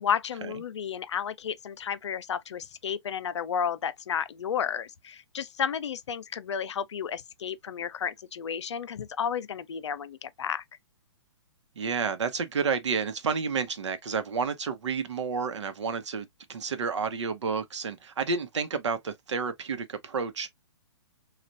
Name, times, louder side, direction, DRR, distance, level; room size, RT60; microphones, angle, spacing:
voice 1, 0.0-10.6, left 8 dB, 80° left, 0.5 m, -32 dB
voice 2, 11.8-20.5, right 5 dB, 80° right, 0.8 m, -30 dB
3.2 x 2.4 x 2.5 m
hypercardioid pair, 145°, 15 cm